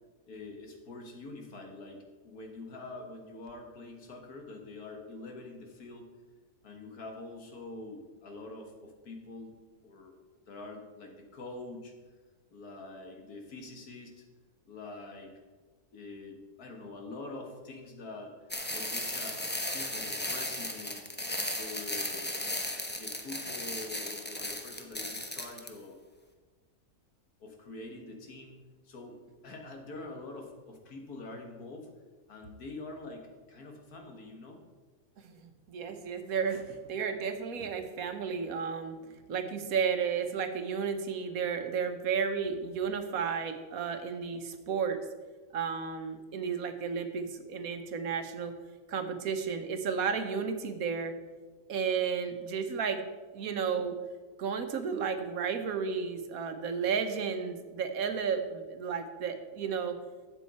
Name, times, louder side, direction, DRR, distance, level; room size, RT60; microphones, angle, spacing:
voice 1, 0.2-6.1 6.6-9.5 9.8-10.2 10.5-11.9 12.5-14.3 14.7-15.3 15.9-21.0 21.5-22.3 22.9-26.0 27.4-28.6 28.8-29.2 29.4-31.9 32.3-34.6, left 2 dB, 90° left, 3 dB, 2.1 m, -45 dB
sound 1, 18.5-25.7, left 1 dB, 10° left, 0.6 m, -36 dB
voice 2, 35.2-39.0 39.3-45.0 45.5-48.5 48.9-51.1 51.7-53.0 53.3-53.9 54.4-59.9, right 6 dB, 70° right, 7 dB, 1.3 m, -33 dB
12.0 x 8.2 x 4.2 m, 1.3 s
omnidirectional pair, 1.6 m